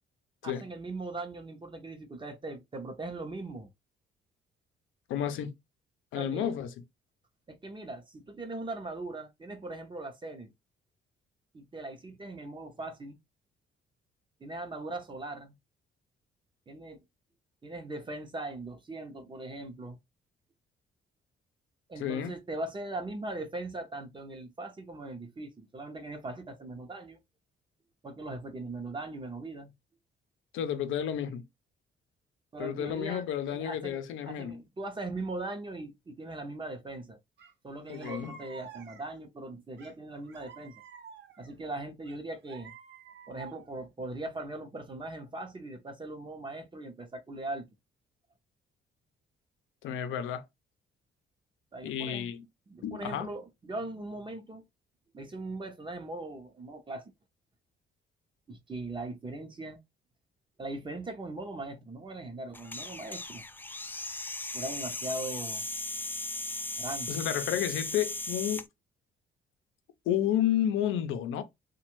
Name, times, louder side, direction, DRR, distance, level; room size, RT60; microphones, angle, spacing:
voice 1, 0.4-3.7 6.1-6.6 7.5-10.5 11.5-13.2 14.4-15.6 16.7-17.0 17.6-20.0 21.9-27.2 28.0-29.7 32.5-37.2 37.6-40.7 41.4-42.7 43.3-47.7 51.7-52.3 52.7-54.6 55.1-57.1 58.5-59.8 60.6-63.4 64.5-65.6 66.8-67.2, right 2 dB, 25° right, 0.7 m, -40 dB
voice 2, 5.1-5.5 6.1-6.7 22.0-22.3 30.5-31.4 32.6-34.6 37.9-38.4 49.8-50.4 51.8-52.4 52.8-53.3 67.1-68.7 70.1-71.4, left 10 dB, 85° left, 0.6 m, -31 dB
sound 1, 37.4-37.5 37.9-39.2 39.8-41.5 42.1-43.8, right 6 dB, 60° right, 0.9 m, -50 dB
sound 2, 62.5-68.7, left 2 dB, 10° left, 0.3 m, -37 dB
3.0 x 2.3 x 3.0 m
cardioid pair, 90°, 20 cm